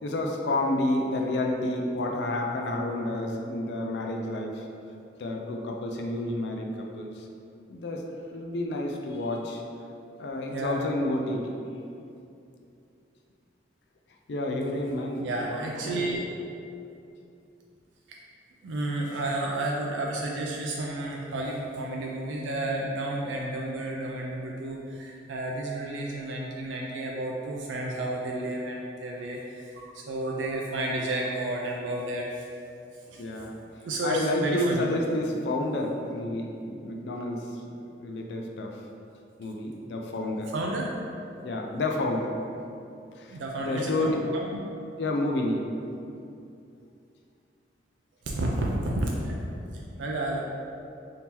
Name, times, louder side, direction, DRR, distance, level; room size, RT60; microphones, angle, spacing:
voice 1, 0.0-4.7 5.2-7.3 7.7-8.0 8.3-9.6 10.2-11.6 14.3-15.6 33.2-33.6 34.0-37.6 38.0-38.8 39.4-40.5 41.4-42.3 43.2-44.3 45.0-45.7, left 1 dB, 75° left, 1 dB, 0.4 m, -30 dB
voice 2, 15.2-16.2 18.1-18.2 18.6-32.5 33.1-33.2 33.8-34.9 40.5-40.9 43.3-44.1 44.5-44.6 48.3-49.4 49.7-50.4, right 1 dB, 90° right, -2 dB, 0.4 m, -31 dB
3.6 x 2.7 x 2.9 m, 2.6 s
head